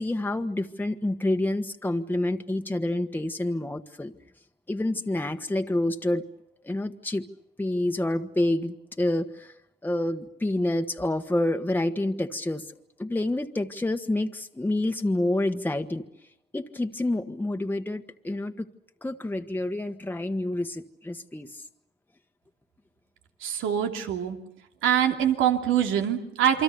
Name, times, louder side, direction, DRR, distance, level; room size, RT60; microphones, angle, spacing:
voice 1, 0.0-4.1 4.7-6.3 6.6-7.3 7.6-9.5 9.8-12.7 13.0-16.0 16.5-18.7 19.0-21.6, left 1 dB, 10° left, 5 dB, 1.4 m, -28 dB
voice 2, 23.4-24.4 24.8-26.6, right 9 dB, 90° right, 4 dB, 2.8 m, -24 dB
28.0 x 24.0 x 6.9 m, 0.82 s
cardioid pair, 90°, 20 cm